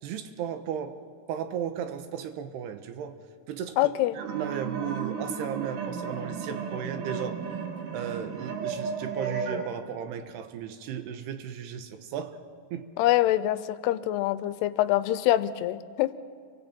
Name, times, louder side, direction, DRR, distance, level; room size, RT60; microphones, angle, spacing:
voice 1, 0.0-1.0 1.3-3.2 3.5-7.4 7.9-12.4 12.7-12.9, right 8 dB, 90° right, 8 dB, 3.2 m, -35 dB
voice 2, 3.8-4.2 13.0-16.1, left 15 dB, 90° left, 14 dB, 2.8 m, -25 dB
sound 1, 4.2-9.7, right 6 dB, 60° right, 3.1 m, -34 dB
29.0 x 24.0 x 4.5 m, 2.1 s
omnidirectional pair, 4.6 m